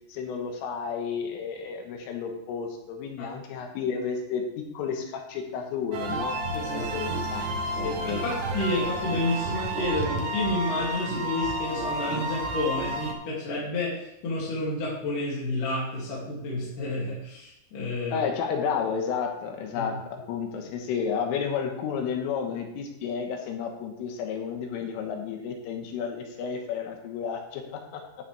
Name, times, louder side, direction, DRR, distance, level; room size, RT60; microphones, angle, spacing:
voice 1, 0.1-4.4 4.7-6.3 6.7-8.2 18.1-19.9 20.3-28.0, left 6 dB, 85° left, 3 dB, 3.8 m, -32 dB
sound 1, 5.9-13.1, right 1 dB, 80° right, 1.8 m, -31 dB
voice 2, 6.5-6.9 7.8-18.2 19.8-19.9, left 2 dB, 45° left, -7 dB, 3.7 m, -30 dB
11.5 x 10.0 x 3.5 m, 0.88 s
omnidirectional pair, 5.7 m